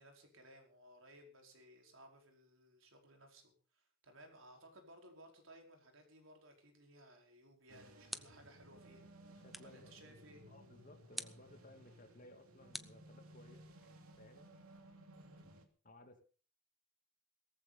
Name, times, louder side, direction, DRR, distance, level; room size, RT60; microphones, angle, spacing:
voice 1, 0.0-10.4 15.2-15.4, right 1 dB, 65° right, 3 dB, 4.9 m, -61 dB
sound 1, 7.4-8.6 9.5-9.9 11.1-11.5 12.7-13.6, equal, ahead, 0.6 m, -49 dB
sound 2, 7.7-15.7, right 1 dB, 80° right, 2.7 m, -59 dB
voice 2, 9.3-10.2 10.5-14.5 15.8-16.2, left 1 dB, 35° left, 5 dB, 2.6 m, -60 dB
18.0 x 14.5 x 4.2 m, 0.38 s
head